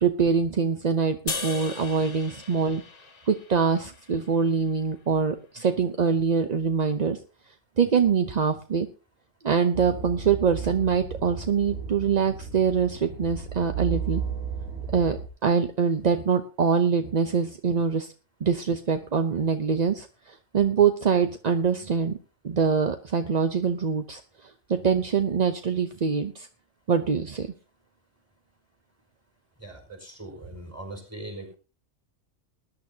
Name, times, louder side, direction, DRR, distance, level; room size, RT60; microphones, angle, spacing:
voice 1, 0.0-2.8 3.3-7.2 7.8-8.9 9.4-14.2 14.9-18.1 18.4-22.2 22.4-24.2 24.7-26.5 26.9-27.5, right 6 dB, 40° right, 8 dB, 0.6 m, -24 dB
sound 1, 1.3-4.6, left 4 dB, 55° left, 1.7 m, -37 dB
sound 2, 9.7-15.3, right 6 dB, 85° right, 2.7 m, -34 dB
voice 2, 29.6-31.5, right 1 dB, 10° right, 2 dB, 4.9 m, -40 dB
20.5 x 11.0 x 2.8 m, 0.35 s
omnidirectional pair, 1.4 m